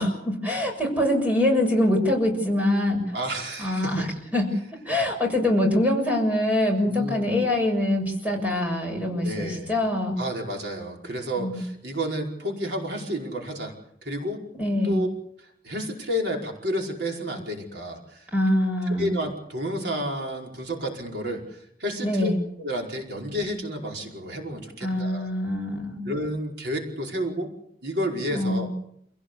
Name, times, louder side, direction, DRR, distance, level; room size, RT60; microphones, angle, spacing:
voice 1, 0.0-3.2 3.6-4.1 4.3-4.5 4.9-10.2 11.4-11.6 14.6-15.0 18.3-19.2 22.0-22.4 24.8-26.0 28.3-28.7, left 1 dB, 10° right, 1 dB, 6.8 m, -24 dB
voice 2, 3.1-4.1 6.8-7.3 9.2-9.7 10.2-13.7 14.0-14.4 14.8-15.1 15.4-18.3 18.9-22.3 22.6-25.3 26.0-27.5 27.8-28.7, equal, 70° right, 0 dB, 5.0 m, -31 dB
28.0 x 17.0 x 8.3 m, 0.73 s
head